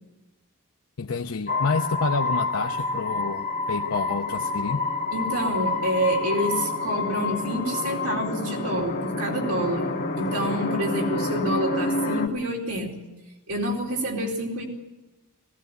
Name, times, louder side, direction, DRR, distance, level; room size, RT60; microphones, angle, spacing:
voice 1, 1.0-4.8, left 4 dB, 75° left, 3 dB, 0.8 m, -28 dB
sound 1, 1.5-12.3, left 3 dB, 45° left, 2.1 m, -28 dB
voice 2, 5.1-9.9 10.2-13.1 13.5-14.7, equal, 85° right, 0 dB, 4.1 m, -27 dB
18.5 x 16.5 x 9.4 m, 1.1 s
head